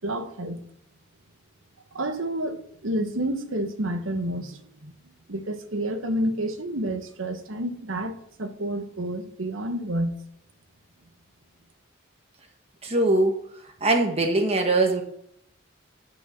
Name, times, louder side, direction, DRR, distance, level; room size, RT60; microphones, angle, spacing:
voice 1, 0.0-0.6 1.9-4.9 5.3-10.2, right 1 dB, 80° right, 1.3 m, -29 dB
voice 2, 12.8-13.4 13.8-15.0, right 2 dB, 30° right, 1.3 m, -21 dB
10.5 x 5.5 x 6.0 m
head